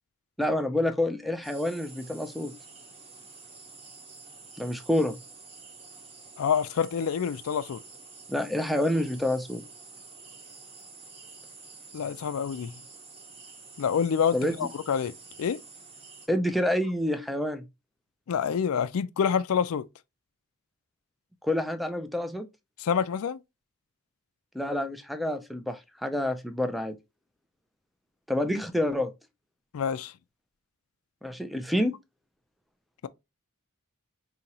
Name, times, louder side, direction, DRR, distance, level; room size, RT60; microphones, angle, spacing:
voice 1, 0.4-2.5 4.6-5.2 8.3-9.6 14.3-14.6 16.3-17.7 21.4-22.5 24.5-27.0 28.3-29.1 31.2-31.9, left 1 dB, ahead, 0.4 m, -28 dB
sound 1, 1.4-16.3, right 4 dB, 25° right, 1.0 m, -49 dB
voice 2, 6.4-7.8 11.9-12.7 13.8-15.1 15.4-15.6 18.3-19.8 22.8-23.4 29.7-30.1, left 7 dB, 70° left, 0.4 m, -27 dB
5.3 x 2.8 x 2.8 m
head